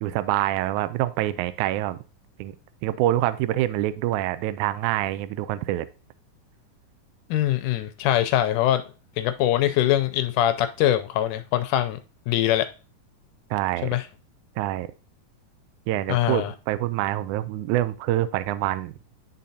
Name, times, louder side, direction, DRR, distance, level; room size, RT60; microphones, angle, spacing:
voice 1, 0.0-2.0 2.4-2.6 2.8-5.9 13.5-13.9 14.6-14.9 15.9-18.9, right 14 dB, 90° right, 1.7 m, -26 dB
voice 2, 7.3-8.8 9.2-12.0 12.3-12.7 13.8-14.0 16.1-16.5, left 12 dB, 80° left, 1.8 m, -23 dB
11.0 x 3.8 x 2.7 m
omnidirectional pair, 4.0 m